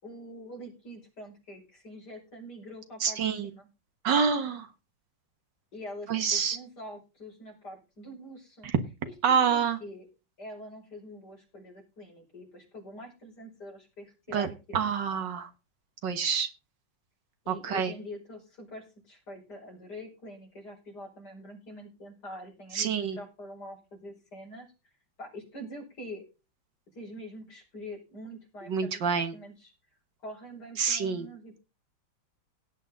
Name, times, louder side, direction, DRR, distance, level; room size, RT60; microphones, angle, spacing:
voice 1, 0.0-3.7 5.7-8.7 9.1-10.1 10.4-14.8 17.4-24.7 25.2-26.2 26.9-29.7 30.2-31.6, equal, 60° left, -1 dB, 5.9 m, -45 dB
voice 2, 3.0-3.5 4.0-4.7 6.1-6.6 8.6-8.7 9.2-9.8 14.3-15.5 16.0-16.5 17.5-17.9 22.7-23.2 28.6-29.4 30.8-31.3, right 6 dB, 70° right, 9 dB, 2.1 m, -27 dB
17.0 x 8.4 x 4.0 m, 0.30 s
omnidirectional pair, 2.0 m